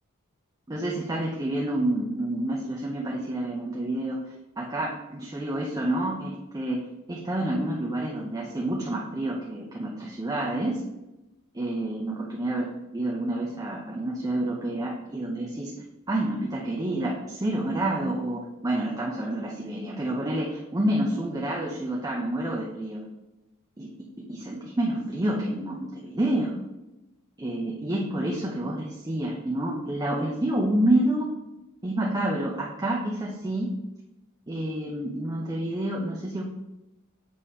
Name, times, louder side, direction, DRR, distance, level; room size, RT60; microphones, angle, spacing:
voice 1, 0.7-4.2 4.6-10.8 11.5-15.7 16.1-23.0 23.8-23.9 24.3-26.6 27.4-31.3 31.8-33.7 34.5-36.4, right 1 dB, 15° right, -2 dB, 0.6 m, -28 dB
7.0 x 2.9 x 4.9 m, 0.97 s
head